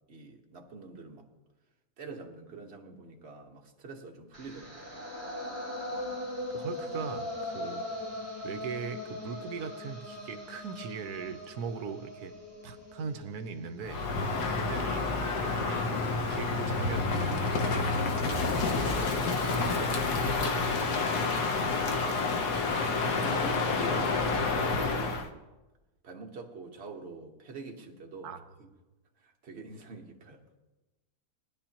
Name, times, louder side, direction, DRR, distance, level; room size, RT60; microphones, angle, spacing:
voice 1, 0.1-1.3 2.0-4.9 18.6-21.1 23.1-25.3 26.0-28.3 28.6-28.7 29.2-30.4, right 4 dB, 40° right, 2 dB, 1.5 m, -45 dB
sound 1, 4.3-14.4, left 1 dB, 15° left, 3.6 m, -40 dB
voice 2, 5.9-7.8 8.4-12.3 12.6-14.0 14.5-17.9 28.2-28.5, right 6 dB, 70° right, 10 dB, 1.2 m, -40 dB
Crow, 13.8-25.3, left 3 dB, 70° left, 1.5 m, -29 dB
19.5 x 10.5 x 2.9 m, 1.1 s
omnidirectional pair, 1.8 m